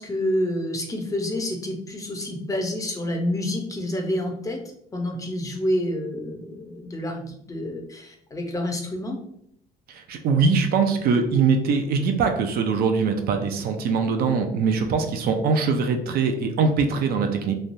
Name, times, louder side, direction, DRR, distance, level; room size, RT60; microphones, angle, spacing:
voice 1, 0.0-4.6 4.9-9.2, left 1 dB, 20° left, 2 dB, 0.6 m, -28 dB
voice 2, 9.9-17.5, right 5 dB, 65° right, 5 dB, 0.4 m, -22 dB
3.1 x 2.2 x 2.5 m, 0.72 s
cardioid pair, 110°, 17 cm